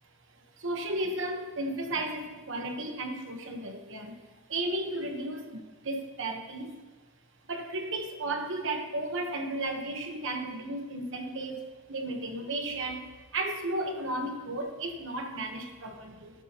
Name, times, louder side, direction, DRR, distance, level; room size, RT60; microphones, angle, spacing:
voice 1, 0.6-4.1 4.5-5.4 5.8-6.7 7.5-11.6 11.9-13.0 13.3-16.3, right 2 dB, 55° right, 4 dB, 1.1 m, -34 dB
13.0 x 8.2 x 3.0 m, 1.3 s
head